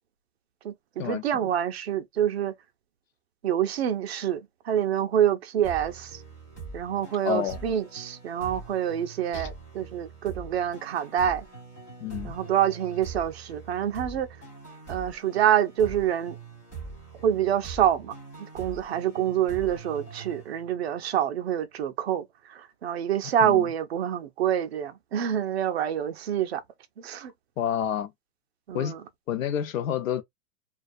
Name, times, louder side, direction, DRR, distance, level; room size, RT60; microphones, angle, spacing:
voice 1, 0.6-2.5 3.4-6.2 6.7-11.5 12.2-14.3 14.9-16.3 17.2-18.1 18.5-22.2 22.5-26.6 27.0-27.3 28.7-29.0, right 10 dB, 45° right, 0.5 m, -26 dB
sound 1, 5.6-21.1, right 4 dB, 15° left, 0.4 m, -43 dB
voice 2, 7.2-7.6 9.3-9.5 12.0-12.3 23.4-23.6 27.6-28.1 28.7-28.9 29.3-30.2, left 9 dB, 60° left, 0.6 m, -28 dB
2.4 x 2.3 x 2.5 m
hypercardioid pair, 150°, 46 cm